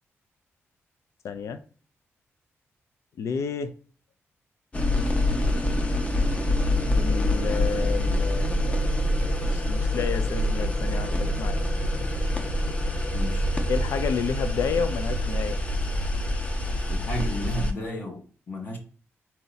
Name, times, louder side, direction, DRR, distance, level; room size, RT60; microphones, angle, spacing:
voice 1, 1.2-1.6 3.2-3.7 6.9-8.9 9.4-11.6 13.7-15.6, left 6 dB, 80° left, 0.5 m, -30 dB
sound 1, 4.7-17.7, left 1 dB, 25° left, 0.6 m, -25 dB
voice 2, 13.1-13.5 16.9-18.8, equal, 45° left, 1.1 m, -33 dB
4.2 x 2.8 x 3.9 m
wide cardioid pair, 165°, 5 cm